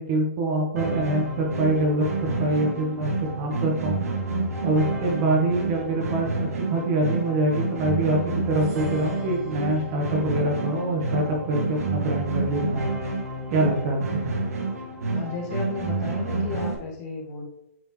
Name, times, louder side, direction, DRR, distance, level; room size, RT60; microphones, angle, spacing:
voice 1, 0.0-3.1 3.4-4.0 4.6-12.8 13.5-14.2, right 1 dB, 25° right, 1 dB, 0.9 m, -25 dB
sound 1, 0.8-16.8, right 3 dB, 80° right, 1.7 m, -29 dB
voice 2, 15.1-17.4, left 4 dB, 25° left, -1 dB, 1.3 m, -33 dB
8.6 x 4.2 x 3.0 m, 0.81 s
hypercardioid pair, 175°, 8 cm